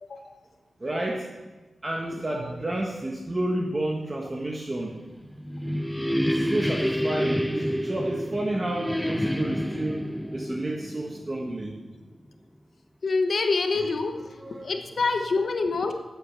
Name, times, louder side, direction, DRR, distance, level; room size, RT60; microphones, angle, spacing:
voice 1, 0.0-0.3 13.0-14.1 14.6-15.9, left 3 dB, 55° left, 6 dB, 1.0 m, -26 dB
voice 2, 0.8-1.3 1.8-5.0 6.2-10.0 10.3-11.7 13.7-13.9 14.3-14.8 15.8-15.9, right 1 dB, 25° right, -1 dB, 1.3 m, -30 dB
sound 1, 5.1-11.8, equal, 5° left, 0.3 m, -28 dB
13.0 x 8.3 x 6.0 m, 1.2 s
wide cardioid pair, 150°, 0 cm